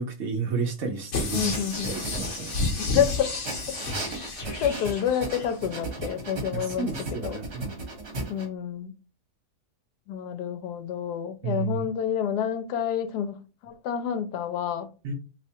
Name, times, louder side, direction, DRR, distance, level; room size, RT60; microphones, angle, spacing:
voice 1, 0.0-1.6 1.9-2.6 6.5-7.8 11.4-11.9 15.0-15.1, right 5 dB, 65° right, 0.7 m, -31 dB
sound 1, 1.1-5.6 6.0-6.1, left 3 dB, 55° left, 1.1 m, -31 dB
voice 2, 1.3-2.0 2.8-3.4 4.6-6.9 7.2-7.4 8.3-8.9 10.1-14.9, left 9 dB, 85° left, 1.2 m, -28 dB
sound 2, 1.4-3.0 3.4-8.5, right 2 dB, 45° right, 1.2 m, -36 dB
3.3 x 2.8 x 2.7 m
omnidirectional pair, 1.7 m